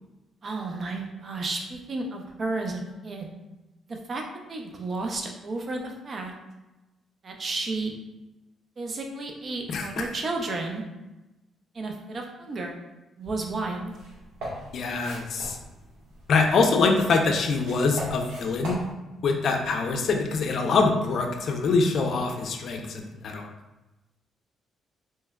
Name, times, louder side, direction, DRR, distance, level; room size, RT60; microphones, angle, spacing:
voice 1, 0.4-3.3 3.9-4.2 4.5-6.3 7.2-7.9 8.8-10.8 11.7-12.8 13.2-13.9, right 3 dB, 45° right, 2 dB, 0.5 m, -32 dB
voice 2, 9.7-10.1 14.7-15.6 16.3-18.8 19.2-23.5, left 4 dB, 60° left, 3 dB, 0.4 m, -24 dB
sound 1, 13.3-18.9, right 1 dB, 85° right, 1.1 m, -41 dB
3.3 x 3.1 x 2.2 m, 1.0 s
cardioid pair, 90°, 0 cm